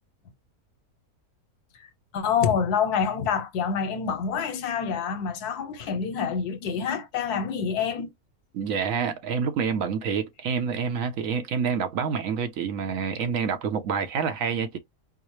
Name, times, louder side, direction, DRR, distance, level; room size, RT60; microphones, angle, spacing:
voice 1, 1.8-8.1, left 7 dB, 85° left, 1.3 m, -27 dB
voice 2, 8.5-14.8, right 6 dB, 65° right, 1.0 m, -27 dB
4.7 x 2.0 x 3.0 m
omnidirectional pair, 1.6 m